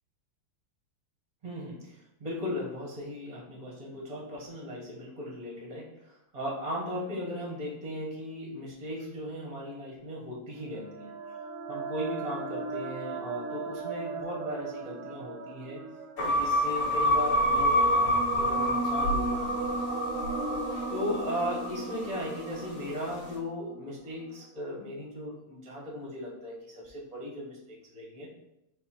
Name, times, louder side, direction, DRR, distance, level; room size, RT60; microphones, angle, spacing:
voice 1, 1.4-11.1 11.7-15.8 16.2-20.0 20.3-20.4 20.9-28.3, left 1 dB, 40° right, -3 dB, 0.5 m, -37 dB
sound 1, 10.7-24.3, right 4 dB, 85° right, 1.5 m, -37 dB
sound 2, 16.2-22.5, left 1 dB, 60° left, 2.1 m, -27 dB
5.2 x 2.1 x 4.3 m, 0.86 s
omnidirectional pair, 2.4 m